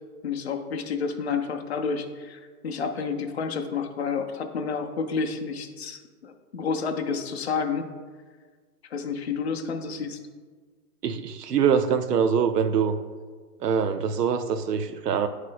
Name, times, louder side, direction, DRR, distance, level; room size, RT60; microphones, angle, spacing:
voice 1, 0.2-7.9 8.9-10.2, left 5 dB, 45° left, 5 dB, 0.5 m, -30 dB
voice 2, 11.0-13.0 13.6-15.3, right 7 dB, 80° right, 9 dB, 0.6 m, -24 dB
9.1 x 3.2 x 3.9 m, 1.5 s
hypercardioid pair, 170°, 47 cm